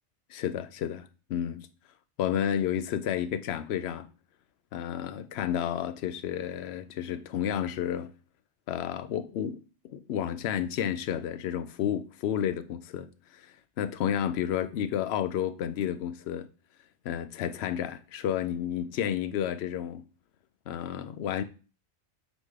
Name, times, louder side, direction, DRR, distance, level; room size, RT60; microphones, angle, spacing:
voice 1, 0.3-1.7 2.2-4.1 4.7-8.1 8.7-13.1 13.3-16.5 17.0-20.0 20.7-21.4, left 9 dB, 70° left, 0.8 m, -31 dB
5.1 x 4.0 x 4.8 m
omnidirectional pair, 1.2 m